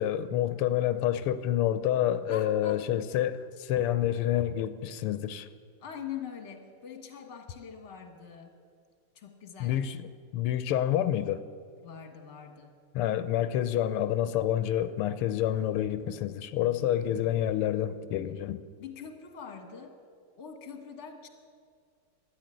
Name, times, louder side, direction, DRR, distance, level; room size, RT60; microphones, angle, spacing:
voice 1, 0.0-5.5 9.6-10.0 10.3-11.4 12.9-18.6, left 11 dB, 90° left, 1.6 m, -28 dB
voice 2, 2.3-2.8 5.8-8.6 9.1-9.8 11.8-12.7 16.5-17.5 18.8-20.0 20.4-21.3, left 7 dB, 35° left, 1.5 m, -44 dB
13.0 x 10.5 x 9.0 m
omnidirectional pair, 2.4 m